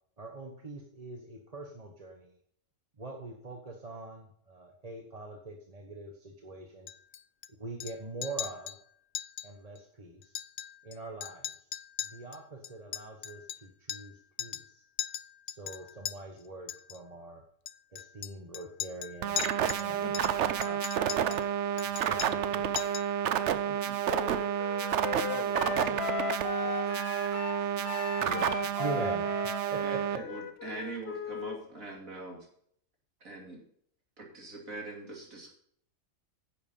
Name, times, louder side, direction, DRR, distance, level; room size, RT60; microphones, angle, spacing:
voice 1, 0.2-2.4 3.0-6.9 7.6-8.8 9.4-10.3 10.8-11.7 12.0-14.8 15.5-17.4 17.9-19.5 19.8-20.2 22.0-22.7 28.2-30.2, right 2 dB, 30° right, 2 dB, 1.1 m, -43 dB
Chink clink, 6.9-7.5 7.8-8.0 8.2-8.8 9.1-9.5 9.8-9.9 10.2-10.9 11.2-14.1 14.4-14.7 15.0-16.1 16.7-17.0 17.7-19.9 20.1-21.4 21.8-22.5 22.8-23.1, left 11 dB, 75° left, 0.4 m, -39 dB
sound 1, 19.2-30.2, right 10 dB, 65° right, 0.9 m, -30 dB
voice 2, 20.4-21.4 21.7-22.2 23.5-24.0 24.7-26.9, left 2 dB, 20° left, 1 dB, 2.9 m, -47 dB
Wind instrument woodwind instrument, 24.1-31.6, left 7 dB, 55° left, 1.0 m, -38 dB
voice 3, 29.8-32.5 33.2-33.6 34.2-35.5, right 3 dB, 80° right, 0 dB, 3.1 m, -42 dB
10.5 x 7.3 x 5.4 m, 0.63 s
omnidirectional pair, 1.4 m